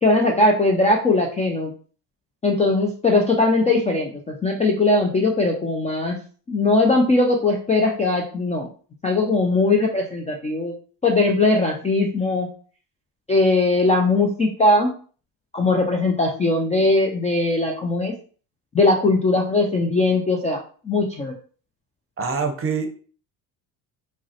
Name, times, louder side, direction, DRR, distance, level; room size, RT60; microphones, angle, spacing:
voice 1, 0.0-1.7 2.4-6.2 6.5-8.7 9.0-10.7 11.0-12.5 13.3-14.9 15.5-18.1 18.7-21.3, left 2 dB, 15° left, 1 dB, 0.3 m, -20 dB
voice 2, 22.2-22.9, right 5 dB, 30° right, 5 dB, 0.7 m, -24 dB
3.6 x 2.1 x 2.8 m, 0.42 s
supercardioid pair, 70°, 48 cm